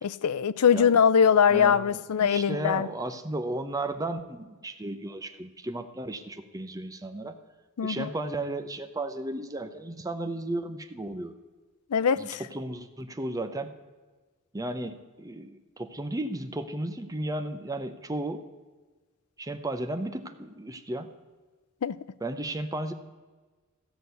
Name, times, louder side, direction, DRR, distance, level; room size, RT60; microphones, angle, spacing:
voice 1, 0.0-2.9 7.8-8.1 11.9-12.4 21.8-22.0, left 7 dB, 90° left, 17 dB, 0.5 m, -22 dB
voice 2, 1.5-7.4 7.8-11.4 12.2-13.7 14.5-18.4 19.4-21.1 22.2-22.9, right 1 dB, 15° right, 7 dB, 0.7 m, -34 dB
13.5 x 6.1 x 8.1 m, 1.3 s
head